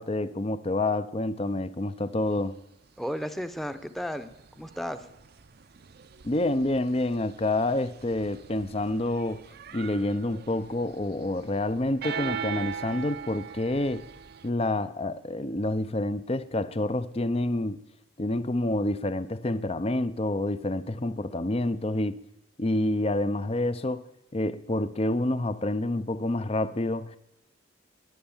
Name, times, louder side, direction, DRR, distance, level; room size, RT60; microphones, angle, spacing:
voice 1, 0.0-2.6 6.2-9.4 9.7-14.0 14.4-17.8 18.2-22.2 22.6-24.0 24.3-27.2, left 2 dB, 30° left, 0.6 m, -28 dB
sound 1, 2.3-2.4 3.0-14.5, right 7 dB, 50° right, 0.6 m, -41 dB
voice 2, 3.0-5.1, equal, ahead, 0.8 m, -34 dB
22.0 x 8.7 x 7.2 m
head